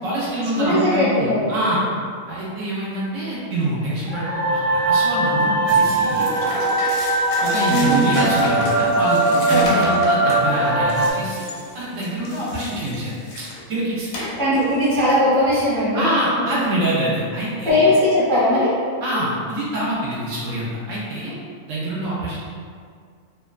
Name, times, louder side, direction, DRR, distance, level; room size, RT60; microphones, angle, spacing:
voice 1, 0.0-1.8 2.3-6.3 7.4-11.4 11.7-13.1 13.7-14.3 15.9-17.9 19.0-21.3 21.7-22.4, right 1 dB, 70° right, -7 dB, 1.0 m, -25 dB
voice 2, 0.6-1.8 7.7-8.1 9.5-9.9 14.4-16.1 16.4-16.5 17.6-18.7, left 1 dB, 5° left, -11 dB, 0.5 m, -19 dB
sound 1, 4.1-11.1, right 2 dB, 60° left, 0.6 m, -20 dB
sound 2, 5.7-13.6 14.1-15.1, left 1 dB, 90° left, 1.0 m, -31 dB
2.7 x 2.2 x 2.3 m, 2.1 s
omnidirectional pair, 1.4 m